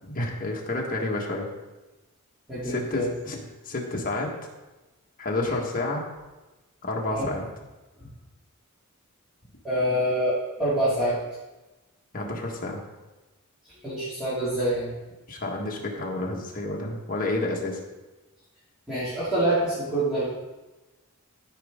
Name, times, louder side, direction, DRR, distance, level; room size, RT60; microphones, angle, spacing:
voice 1, 0.1-1.5 2.6-4.3 5.2-6.0 6.8-7.5 12.1-12.8 15.3-17.8, left 2 dB, 40° left, -1 dB, 1.5 m, -30 dB
voice 2, 2.5-3.1 7.1-7.3 8.0-8.1 9.6-11.2 13.8-14.9 18.9-20.3, right 1 dB, 5° right, -13 dB, 2.6 m, -26 dB
14.0 x 5.2 x 3.7 m, 1.1 s
head